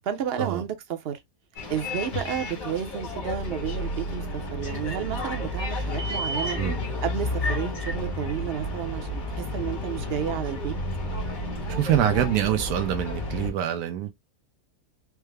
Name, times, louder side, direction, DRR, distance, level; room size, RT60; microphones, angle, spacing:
voice 1, 0.0-1.2 1.7-4.2 4.5-6.6 7.0-10.8, right 9 dB, 50° right, 0.8 m, -31 dB
Bus, 1.6-13.5, left 1 dB, 65° left, 1.8 m, -31 dB
voice 2, 11.8-14.1, right 10 dB, 80° right, 1.1 m, -25 dB
4.7 x 2.0 x 3.3 m
omnidirectional pair, 1.6 m